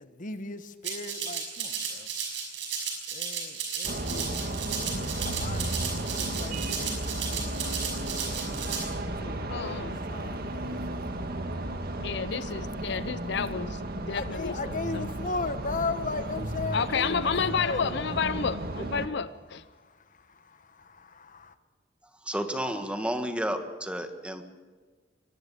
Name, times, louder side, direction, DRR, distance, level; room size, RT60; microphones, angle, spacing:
voice 1, 0.0-2.1 3.1-4.4 4.9-8.7 9.1-11.2 14.1-18.2 19.7-21.5, left 3 dB, 45° left, 11 dB, 1.3 m, -38 dB
Rattle (instrument), 0.8-8.8, right 6 dB, 75° right, 5.9 m, -34 dB
sound 1, 3.8-19.1, right 1 dB, 55° right, 1.9 m, -34 dB
voice 2, 9.5-10.0 12.0-15.0 16.7-19.6, left 6 dB, 65° left, 15 dB, 0.7 m, -31 dB
voice 3, 22.3-24.4, equal, 5° right, 7 dB, 1.6 m, -31 dB
23.5 x 18.5 x 7.1 m, 1.4 s
head